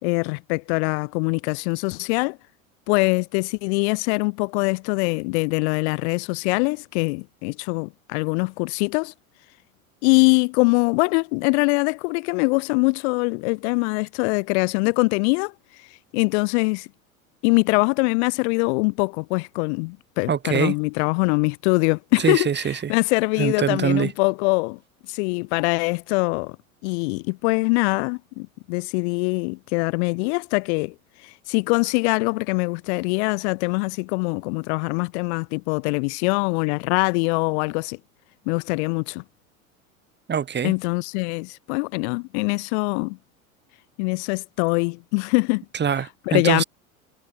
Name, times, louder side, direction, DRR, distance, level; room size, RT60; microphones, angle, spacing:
voice 1, 0.0-2.4 2.9-9.1 10.0-15.5 15.8-15.9 16.1-16.9 17.4-22.5 22.9-24.8 25.1-26.6 26.8-30.9 31.2-38.0 38.5-39.2 40.6-43.2 44.0-45.6 46.3-46.6, left 31 dB, 50° left, 1.5 m, -23 dB
voice 2, 20.3-20.7 22.2-22.9 23.4-24.1 40.3-40.7 45.7-46.6, right 7 dB, 25° right, 4.2 m, -23 dB
figure-of-eight pair, 75°, 42 cm